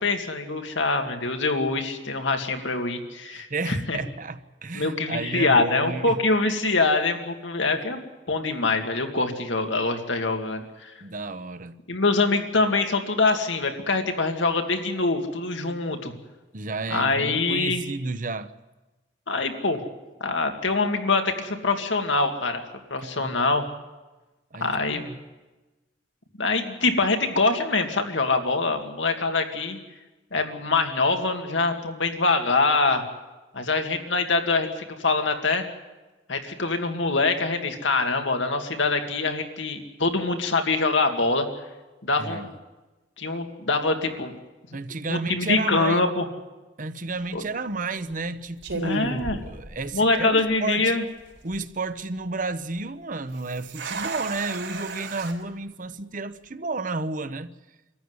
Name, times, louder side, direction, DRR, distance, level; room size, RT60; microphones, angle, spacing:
voice 1, 0.0-4.0 4.7-8.0 8.3-10.9 11.9-16.1 16.9-17.8 19.3-19.8 20.2-22.6 22.9-23.6 24.6-25.0 26.4-29.8 30.3-33.0 33.5-35.7 36.3-41.5 42.0-42.5 43.2-44.3 45.1-46.2 47.3-47.4 48.8-49.4 49.9-51.0, left 3 dB, 85° left, 2.3 m, -24 dB
voice 2, 3.3-6.2 11.0-11.8 16.5-18.5 23.0-23.4 24.5-25.2 42.2-42.5 44.7-46.1 46.8-51.0 51.4-57.5, right 3 dB, 45° right, 0.9 m, -32 dB
sound 1, 47.1-47.4 48.1-48.3 48.6-50.2 50.5-50.6 51.2-51.6 53.3-55.3, right 3 dB, 80° right, 4.0 m, -35 dB
25.5 x 14.0 x 9.7 m
head